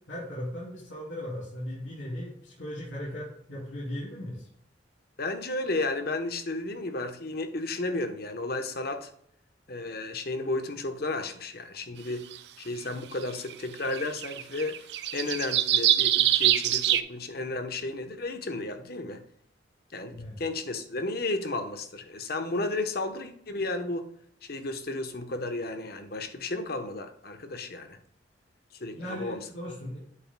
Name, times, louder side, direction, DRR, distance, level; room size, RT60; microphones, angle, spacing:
voice 1, 0.1-4.5 20.1-20.4 28.9-30.0, equal, 80° left, -8 dB, 3.1 m, -37 dB
voice 2, 5.2-9.1 9.7-12.3 12.6-14.8 15.1-19.2 19.9-24.1 24.4-28.0 28.8-29.4, left 2 dB, 55° left, 7 dB, 1.0 m, -33 dB
sound 1, 12.3-12.4 13.5-13.6 13.8-17.0, right 12 dB, 65° right, 0.5 m, -24 dB
8.5 x 7.3 x 2.3 m, 0.67 s
head